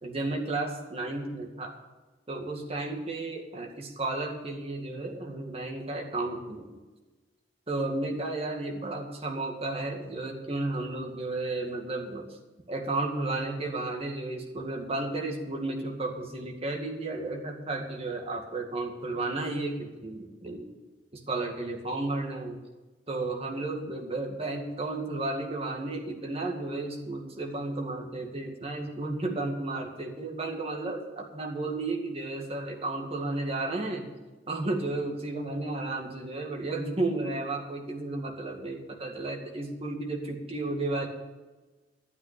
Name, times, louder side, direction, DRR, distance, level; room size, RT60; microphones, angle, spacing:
voice 1, 0.0-1.7 2.3-6.7 7.7-12.3 12.7-20.7 21.1-22.6 23.1-34.0 34.5-41.1, right 2 dB, 35° right, 0 dB, 2.1 m, -33 dB
12.0 x 9.4 x 6.9 m, 1.2 s
head